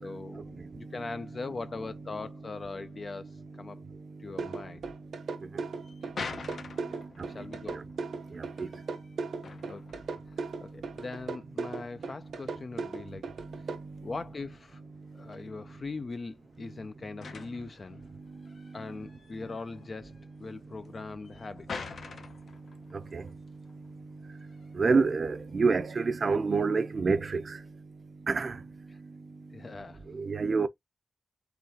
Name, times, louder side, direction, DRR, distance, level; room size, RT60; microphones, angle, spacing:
voice 1, 0.0-3.8 4.2-4.9 6.9-7.8 9.7-10.0 10.4-13.3 14.0-14.8 15.1-18.0 18.7-20.1 20.4-21.9 28.9-29.0 29.5-30.0, left 3 dB, 35° left, 0.3 m, -41 dB
sound 1, 4.4-13.8, right 4 dB, 90° right, 1.0 m, -36 dB
sound 2, 5.5-25.3, left 4 dB, 60° left, 0.7 m, -47 dB
voice 2, 6.6-7.5 7.7-7.8 8.3-8.7 13.5-14.0 22.9-23.2 24.7-27.6 28.3-28.6 30.1-30.7, right 4 dB, 40° right, 0.5 m, -29 dB
3.9 x 3.6 x 2.8 m
wide cardioid pair, 155°, 0 cm